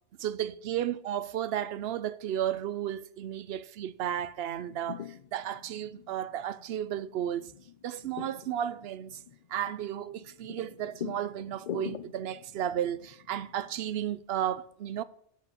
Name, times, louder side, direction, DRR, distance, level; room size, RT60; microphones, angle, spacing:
voice 1, 0.2-7.5 7.8-9.2 9.5-15.0, right 10 dB, 65° right, 0.8 m, -33 dB
sound 1, 4.4-14.2, left 9 dB, 60° left, 0.4 m, -45 dB
8.4 x 8.1 x 6.6 m
omnidirectional pair, 1.2 m